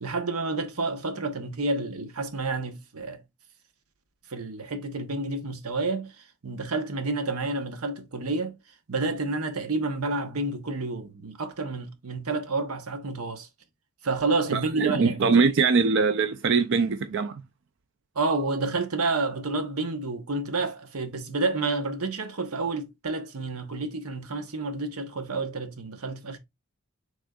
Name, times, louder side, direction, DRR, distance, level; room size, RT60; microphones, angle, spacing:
voice 1, 0.0-3.2 4.3-8.6 8.9-13.5 14.0-15.4 18.1-26.4, right 3 dB, 90° right, 1.0 m, -29 dB
voice 2, 14.5-17.4, right 5 dB, 55° right, 0.4 m, -22 dB
6.3 x 3.6 x 2.3 m
head